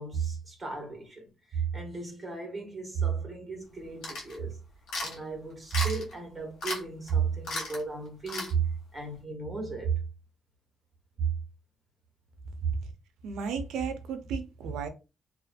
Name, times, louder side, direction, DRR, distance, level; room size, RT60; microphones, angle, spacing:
voice 1, 0.0-4.6 5.0-10.0 11.2-11.4 12.6-12.7, right 6 dB, 30° right, 1.2 m, -33 dB
sound 1, 4.0-4.4 4.9-5.2 5.7-6.1 6.6-6.8 7.1-7.2 7.4-7.8 8.3-8.5, left 2 dB, 80° left, 1.1 m, -34 dB
voice 2, 13.2-14.9, right 5 dB, 85° right, 0.5 m, -34 dB
2.5 x 2.4 x 2.4 m
cardioid pair, 90°, 0 cm